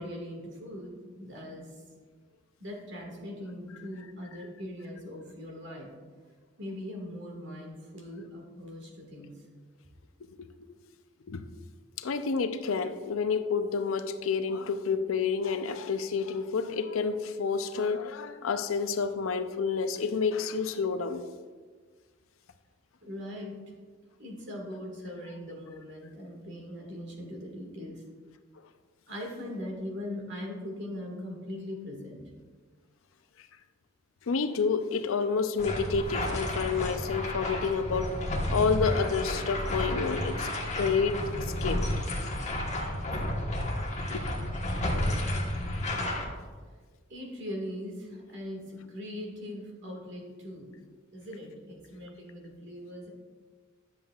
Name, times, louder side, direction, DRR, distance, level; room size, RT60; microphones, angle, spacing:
voice 1, 0.0-1.8 2.6-5.9 6.6-9.5 23.0-23.7 24.2-28.0 29.1-32.2 47.1-50.7 51.1-53.1, left 1 dB, 65° right, 1.8 m, -40 dB
voice 2, 12.0-21.2 34.3-38.1 38.5-41.8 44.1-44.2, left 5 dB, 85° left, 0.5 m, -29 dB
sound 1, 35.6-46.2, left 1 dB, 35° left, 1.2 m, -31 dB
10.5 x 7.2 x 2.4 m
head